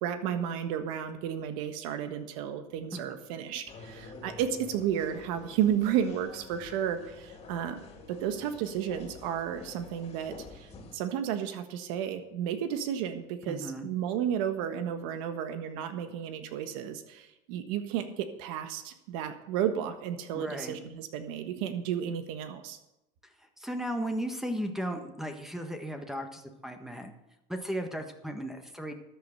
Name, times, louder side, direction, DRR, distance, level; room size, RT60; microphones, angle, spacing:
voice 1, 0.0-22.8, right 9 dB, 85° right, 8 dB, 1.4 m, -32 dB
sound 1, 3.7-11.0, left 3 dB, 35° left, 2.7 m, -49 dB
voice 2, 13.5-13.9 20.3-20.8 23.2-27.1 27.5-28.9, equal, ahead, 5 dB, 1.5 m, -36 dB
13.0 x 7.7 x 6.7 m, 0.89 s
supercardioid pair, 115°, 17 cm